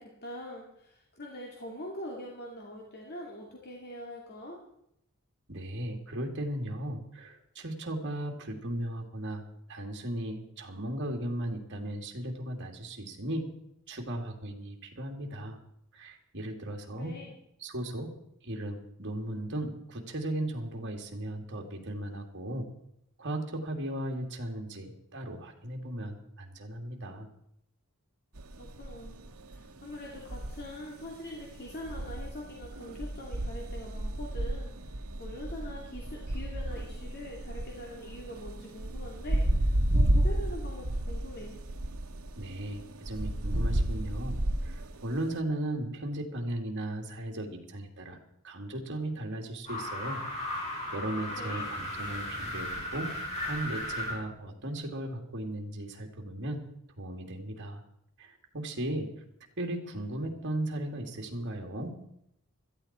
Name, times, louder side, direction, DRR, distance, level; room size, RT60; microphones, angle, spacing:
voice 1, 0.0-4.6 16.9-17.3 28.6-41.5 51.3-51.7, equal, 50° left, -1 dB, 2.4 m, -43 dB
voice 2, 5.5-9.4 9.7-13.5 13.9-15.6 15.9-17.1 17.6-18.1 18.4-22.7 23.2-27.3 42.4-48.2 48.4-50.2 50.9-53.1 53.4-56.6 57.0-57.8 58.2-59.1 59.6-62.0, right 1 dB, 55° right, 2 dB, 2.6 m, -36 dB
sound 1, 28.4-45.4, right 1 dB, 90° right, 1.2 m, -32 dB
sound 2, 49.7-54.2, left 1 dB, 30° left, 5.4 m, -36 dB
16.5 x 13.5 x 4.4 m, 0.75 s
head